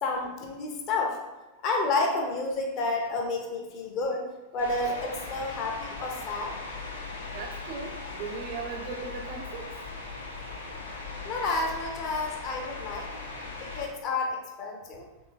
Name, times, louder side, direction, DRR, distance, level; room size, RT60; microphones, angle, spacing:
voice 1, 0.0-1.2 1.6-4.2 4.5-6.6 11.3-13.1 13.6-15.1, left 3 dB, 35° left, 1 dB, 0.7 m, -30 dB
sound 1, 4.6-13.9, left 3 dB, 75° left, 0.7 m, -39 dB
voice 2, 7.3-9.7, right 4 dB, 45° right, 1 dB, 0.4 m, -38 dB
3.5 x 3.4 x 3.2 m, 1.1 s
figure-of-eight pair, 90°, 0 cm